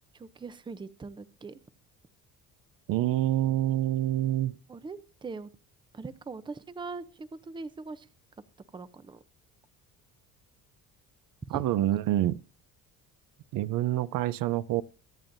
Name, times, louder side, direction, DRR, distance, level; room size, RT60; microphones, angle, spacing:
voice 1, 0.1-1.6 4.7-5.5 5.9-8.1 8.7-9.2 11.5-11.8, right 4 dB, 15° right, 0.6 m, -41 dB
voice 2, 2.9-4.5 11.5-12.4 13.5-14.8, right 14 dB, 70° right, 0.6 m, -27 dB
23.0 x 8.9 x 2.6 m
cardioid pair, 140°, 35 cm